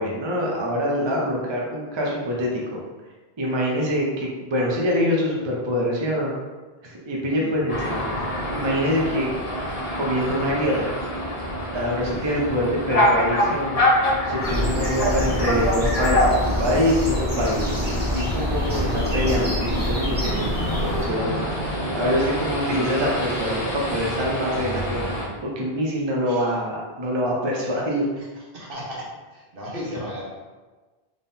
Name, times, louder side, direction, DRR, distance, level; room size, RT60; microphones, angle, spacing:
voice 1, 0.0-2.8 3.4-6.3 6.8-9.3 9.9-11.0 11.7-13.8 14.2-17.7 18.1-21.4 21.9-25.1 25.4-28.0, equal, 35° right, -3 dB, 0.6 m, -25 dB
voice 2, 7.3-7.6 14.8-15.2 26.2-26.6 27.5-30.2, equal, 65° right, -5 dB, 1.3 m, -37 dB
sound 1, 7.7-25.3, equal, 40° left, 1.1 m, -26 dB
sound 2, 14.4-21.1, left 1 dB, 10° right, 1.0 m, -26 dB
3.8 x 3.6 x 2.7 m, 1.3 s
omnidirectional pair, 1.0 m